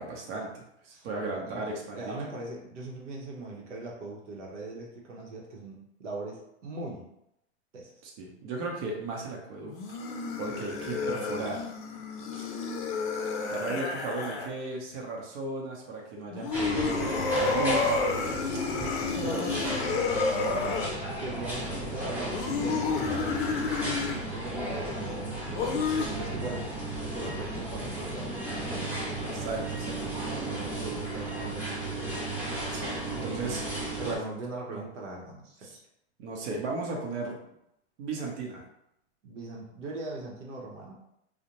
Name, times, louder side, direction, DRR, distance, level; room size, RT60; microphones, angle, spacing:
voice 1, 0.0-2.2 8.0-10.0 10.4-11.7 12.3-12.6 13.5-18.0 19.2-19.7 29.2-30.9 32.6-33.6 34.0-34.2 34.7-34.8 35.6-35.8 36.2-37.4 38.0-38.6, right 3 dB, 55° right, -1 dB, 0.8 m, -36 dB
voice 2, 0.9-7.1 7.7-7.9 19.1-26.7 27.1-29.0 30.5-32.2 34.0-35.7 39.2-40.9, right 2 dB, 85° right, -2 dB, 0.8 m, -40 dB
sound 1, 9.7-14.5 16.3-20.9 22.3-24.3 25.5-26.1, left 4 dB, 45° left, 0.5 m, -30 dB
sound 2, 16.5-34.2, right 1 dB, 5° right, 0.6 m, -34 dB
2.4 x 2.1 x 2.8 m, 0.79 s
hypercardioid pair, 120°, 36 cm